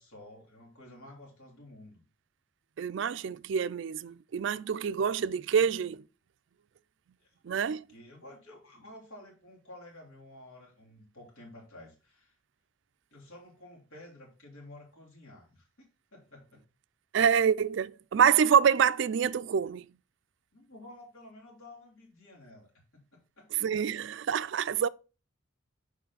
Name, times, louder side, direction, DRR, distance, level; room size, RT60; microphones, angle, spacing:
voice 1, 0.0-2.0 7.2-12.3 13.1-16.6 20.5-22.7 23.1-23.5, left 1 dB, 85° left, 3.2 m, -52 dB
voice 2, 2.8-6.0 7.4-7.9 17.1-19.9 23.5-24.9, right 7 dB, 60° right, 0.3 m, -26 dB
6.7 x 4.9 x 3.9 m
head